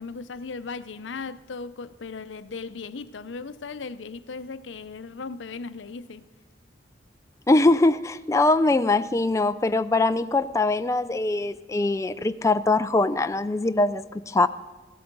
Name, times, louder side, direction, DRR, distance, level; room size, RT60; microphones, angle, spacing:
voice 1, 0.0-6.3, left 4 dB, 85° left, 0.6 m, -37 dB
voice 2, 7.5-14.5, left 2 dB, 15° left, 0.3 m, -22 dB
15.5 x 12.5 x 5.3 m
head